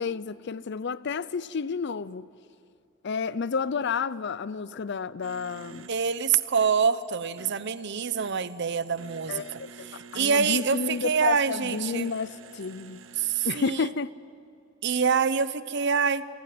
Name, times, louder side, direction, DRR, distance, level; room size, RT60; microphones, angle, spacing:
voice 1, 0.0-2.3 3.0-5.9 9.3-9.9 10.1-13.0 13.4-14.1, left 5 dB, 60° left, 0.5 m, -31 dB
sound 1, 5.2-13.5, right 5 dB, 80° right, 1.1 m, -49 dB
voice 2, 5.9-12.1 13.2-13.9 14.8-16.2, right 6 dB, 60° right, 0.8 m, -26 dB
26.5 x 17.0 x 9.5 m
head